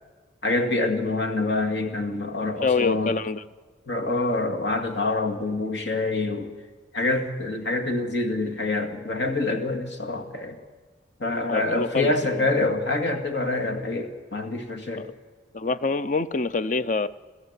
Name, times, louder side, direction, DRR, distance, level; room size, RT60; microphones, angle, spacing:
voice 1, 0.4-3.2 3.9-6.5 6.9-10.6 11.2-15.1, left 2 dB, 70° left, 4 dB, 2.3 m, -26 dB
voice 2, 2.6-3.4 11.5-12.5 15.0-15.1 15.5-17.1, left 4 dB, 40° left, 13 dB, 0.6 m, -26 dB
30.0 x 14.0 x 8.2 m, 1.4 s
head